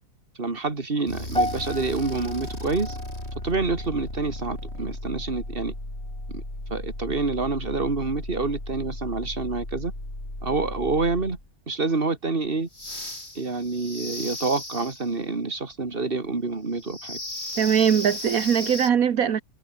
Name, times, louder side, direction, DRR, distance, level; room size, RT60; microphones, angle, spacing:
voice 1, 0.4-3.0 3.4-5.7 6.3-6.4 6.7-9.9 10.4-11.4 11.7-12.7 13.3-17.2, right 3 dB, 40° right, 2.8 m, -27 dB
sound 1, 1.1-11.5 12.7-15.1 16.8-18.9, left 1 dB, 45° left, 8.4 m, -36 dB
sound 2, 1.4-5.7 6.0-6.4 7.0-7.1, equal, 5° left, 5.9 m, -34 dB
voice 2, 17.6-19.4, right 8 dB, 75° right, 1.6 m, -21 dB
omnidirectional pair, 1.5 m